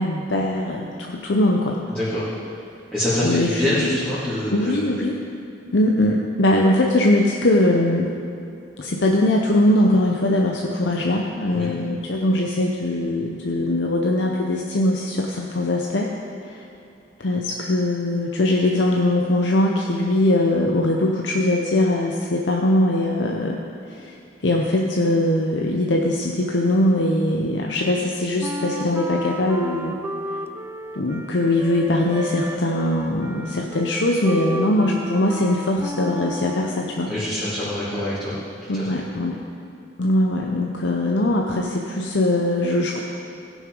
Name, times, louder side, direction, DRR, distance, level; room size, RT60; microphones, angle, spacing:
voice 1, 0.0-1.8 3.2-3.9 4.5-5.2 5.7-8.1 8.8-16.1 16.4-16.7 17.2-23.6 23.9-24.2 24.4-30.0 30.9-37.1 38.7-39.4 40.0-43.0, left 1 dB, 70° left, 0 dB, 0.8 m, -21 dB
voice 2, 1.9-2.3 2.9-4.8 11.5-11.7 37.1-38.3 38.7-38.9, left 1 dB, 5° left, -13 dB, 2.6 m, -25 dB
Wind instrument woodwind instrument, 28.4-36.8, equal, 10° right, 0.4 m, -32 dB
16.5 x 6.3 x 5.3 m, 2.6 s
head